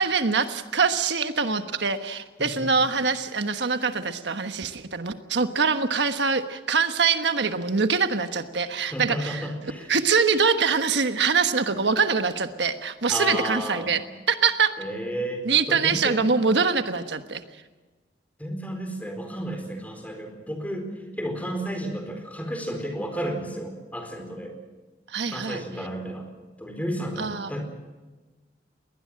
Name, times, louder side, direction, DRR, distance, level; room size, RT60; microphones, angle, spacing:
voice 1, 0.0-9.5 9.9-14.0 14.3-14.7 15.4-17.4 25.1-25.6 27.2-27.5, right 5 dB, 85° right, 8 dB, 1.3 m, -24 dB
voice 2, 2.4-2.7 8.8-9.9 13.1-13.9 14.8-16.3 18.4-20.9 21.2-24.5 25.3-26.3 26.6-27.6, equal, 10° left, 5 dB, 4.3 m, -32 dB
22.0 x 19.0 x 7.7 m, 1.2 s
head